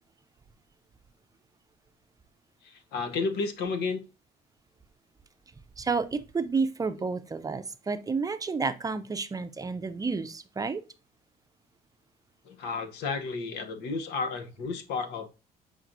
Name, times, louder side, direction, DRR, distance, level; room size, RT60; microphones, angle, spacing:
voice 1, 2.6-4.0 12.5-15.3, left 4 dB, 80° left, 0.9 m, -32 dB
voice 2, 5.8-10.8, right 4 dB, 20° right, 0.5 m, -30 dB
7.3 x 5.0 x 2.6 m
cardioid pair, 110°, 17 cm